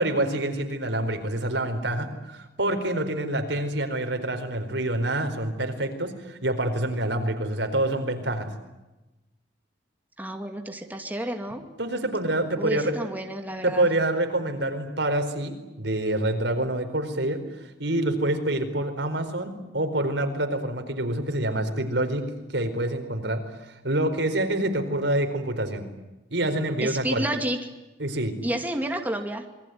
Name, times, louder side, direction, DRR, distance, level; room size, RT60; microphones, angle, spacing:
voice 1, 0.0-8.5 11.8-13.1 13.6-17.4 17.8-22.2 22.5-25.8 26.3-27.3 28.0-28.4, right 1 dB, 75° right, 6 dB, 4.7 m, -27 dB
voice 2, 10.2-11.7 12.6-13.9 26.8-27.6 28.4-29.4, right 1 dB, 10° right, 4 dB, 2.4 m, -30 dB
27.5 x 22.0 x 9.5 m, 1.0 s
head